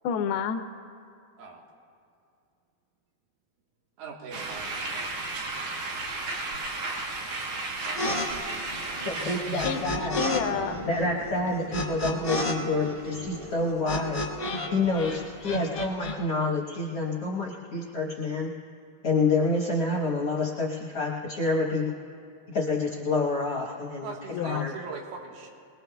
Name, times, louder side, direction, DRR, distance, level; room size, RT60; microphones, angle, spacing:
voice 1, 0.0-0.7 9.3-10.8 24.3-24.6, left 7 dB, 90° left, 6 dB, 2.6 m, -30 dB
voice 2, 4.0-5.0 24.0-25.5, right 4 dB, 85° right, -1 dB, 3.4 m, -40 dB
sound 1, 4.3-10.1, right 2 dB, 60° right, 2.5 m, -34 dB
sound 2, 8.0-8.3 8.5-10.4 10.7-14.7 14.9-16.1, left 2 dB, 40° left, 0.8 m, -31 dB
sound 3, 8.3-15.4, equal, 30° right, 0.6 m, -41 dB
voice 3, 9.0-10.2 10.8-14.2 14.7-18.5 19.0-21.9 22.5-24.1 24.4-24.7, left 3 dB, 65° left, -3 dB, 1.5 m, -28 dB
23.5 x 21.0 x 2.3 m, 2.4 s
omnidirectional pair, 4.4 m